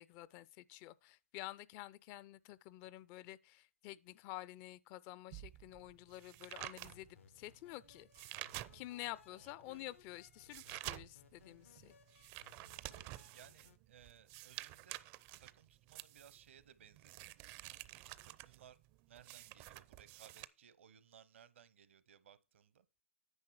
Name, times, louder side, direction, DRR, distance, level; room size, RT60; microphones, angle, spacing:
voice 1, 0.0-8.4 8.7-12.0, left 16 dB, 35° left, 0.4 m, -50 dB
sound 1, 5.3-9.2 9.6-20.5, right 17 dB, 35° right, 0.5 m, -50 dB
sound 2, 6.8-13.8, left 7 dB, 75° left, 0.7 m, -66 dB
voice 2, 9.3-9.9 13.3-15.1 15.4-18.8 19.1-22.9, right 9 dB, 70° right, 0.9 m, -62 dB
9.8 x 5.7 x 4.6 m
hypercardioid pair, 130°, 7 cm